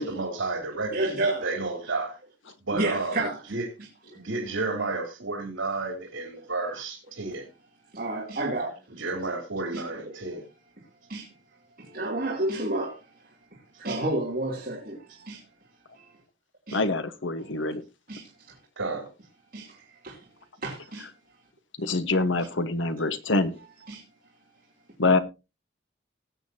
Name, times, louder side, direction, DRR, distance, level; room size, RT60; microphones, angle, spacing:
voice 1, 0.0-2.2 2.6-3.7 4.1-7.5 8.9-10.4 18.8-19.1, right 3 dB, 80° right, 3.1 m, -32 dB
voice 2, 0.9-1.5 2.7-3.4 7.9-8.7 10.1-10.2 11.1-11.2 11.8-13.0 13.8-15.4 16.7-16.8 18.1-18.2 19.5-19.7 20.0-20.1 20.6-21.0 23.9-24.0, right 2 dB, 45° right, 2.9 m, -29 dB
voice 3, 16.7-17.8 21.8-23.6 25.0-25.2, left 3 dB, 70° left, 1.2 m, -25 dB
19.0 x 8.0 x 2.8 m
head